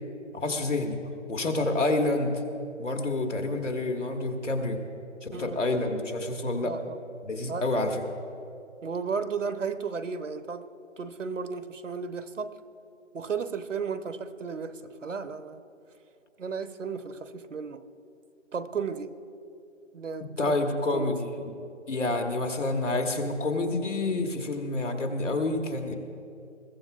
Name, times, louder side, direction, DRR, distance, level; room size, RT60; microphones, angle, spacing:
voice 1, 0.3-1.0 1.3-2.3 2.8-4.8 5.2-6.7 7.2-8.0 20.4-21.3 21.9-26.0, left 2 dB, 75° left, 4 dB, 1.7 m, -28 dB
voice 2, 6.6-7.0 7.5-7.9 8.8-10.7 11.0-12.5 13.1-15.6 16.4-17.8 18.5-19.1 19.9-20.6 20.9-21.2, right 5 dB, 75° right, 11 dB, 0.9 m, -34 dB
22.0 x 15.0 x 2.4 m, 2.6 s
figure-of-eight pair, 180°, 37 cm